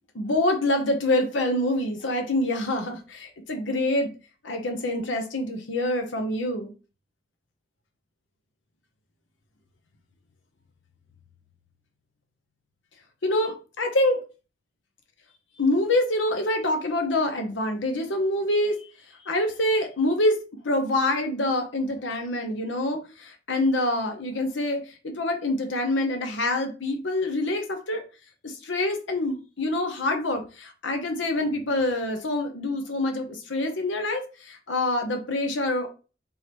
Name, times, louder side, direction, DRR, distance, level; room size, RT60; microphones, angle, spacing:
voice 1, 0.1-4.1 4.4-6.7 13.2-14.2 15.6-18.9 19.2-20.4 20.6-28.0 28.4-35.9, left 1 dB, 90° left, 5 dB, 0.9 m, -26 dB
3.7 x 3.1 x 4.4 m, 0.33 s
head